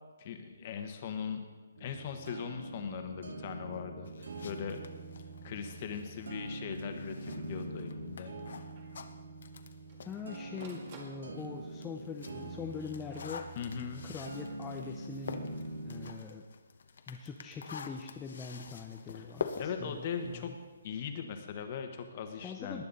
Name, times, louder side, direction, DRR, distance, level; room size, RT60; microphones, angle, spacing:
voice 1, 0.2-1.5 1.8-4.8 5.4-8.7 13.5-14.0 19.1-19.3 19.6-20.5 20.8-22.9, left 7 dB, 35° left, 6 dB, 1.3 m, -40 dB
sound 1, 1.8-16.1, right 2 dB, 80° right, 1.9 m, -44 dB
sound 2, 4.1-10.8 11.3-21.0, left 5 dB, 60° left, 1.0 m, -47 dB
Printer, 8.0-8.1 8.8-9.0 9.6-11.7 12.5-14.0 15.7-16.1, right 3 dB, 30° right, 2.0 m, -56 dB
voice 2, 10.0-13.6 14.0-15.5 15.8-16.4 17.1-20.6 22.4-22.9, left 5 dB, 10° left, 0 dB, 0.6 m, -43 dB
19.0 x 9.6 x 4.1 m, 1.3 s
hypercardioid pair, 165°, 0 cm